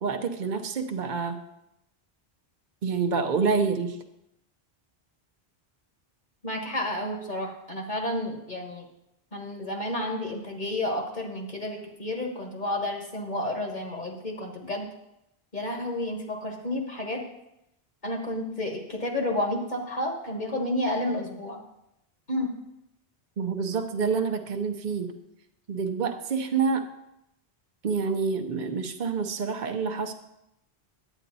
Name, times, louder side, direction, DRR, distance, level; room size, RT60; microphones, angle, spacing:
voice 1, 0.0-1.4 2.8-4.0 23.4-25.1 25.7-26.8 27.8-30.1, right 5 dB, 50° right, 6 dB, 0.9 m, -27 dB
voice 2, 6.4-8.9 9.3-14.9 15.5-17.2 18.0-21.6 22.3-22.5, left 1 dB, 45° left, 1 dB, 1.6 m, -31 dB
10.0 x 8.9 x 4.1 m, 0.85 s
omnidirectional pair, 1.1 m